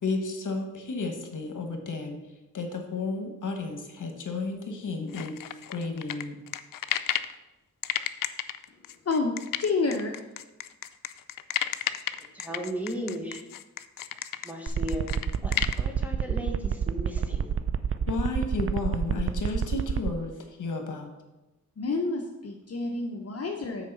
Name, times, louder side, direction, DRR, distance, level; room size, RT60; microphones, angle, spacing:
voice 1, 0.0-2.2 2.5-6.4 18.1-21.1, left 3 dB, 70° left, 4 dB, 1.2 m, -32 dB
sound 1, 5.1-7.3 7.8-15.8, left 11 dB, 85° left, 0.5 m, -32 dB
voice 2, 9.0-10.3 21.8-23.9, left 3 dB, 50° left, 2 dB, 0.8 m, -29 dB
voice 3, 12.2-13.4 14.4-15.1 15.4-17.6, equal, 5° right, 1 dB, 1.4 m, -36 dB
sound 2, 14.7-20.1, right 7 dB, 45° right, 0.4 m, -27 dB
6.5 x 4.8 x 6.6 m, 1.0 s
wide cardioid pair, 85°, 32 cm